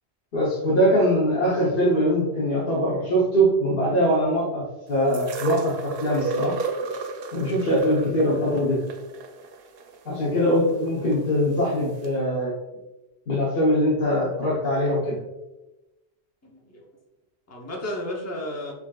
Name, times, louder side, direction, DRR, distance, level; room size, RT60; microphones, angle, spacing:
voice 1, 0.3-4.6 4.9-6.5 7.3-8.8 10.1-12.5 13.3-15.2, equal, 55° left, -8 dB, 1.1 m, -22 dB
sound 1, 5.1-11.2 12.0-12.1, right 4 dB, 60° right, 0.7 m, -32 dB
voice 2, 10.2-10.5 16.4-16.8 17.5-18.7, left 1 dB, 15° left, -2 dB, 0.7 m, -34 dB
6.9 x 2.9 x 2.3 m, 1.0 s
omnidirectional pair, 1.1 m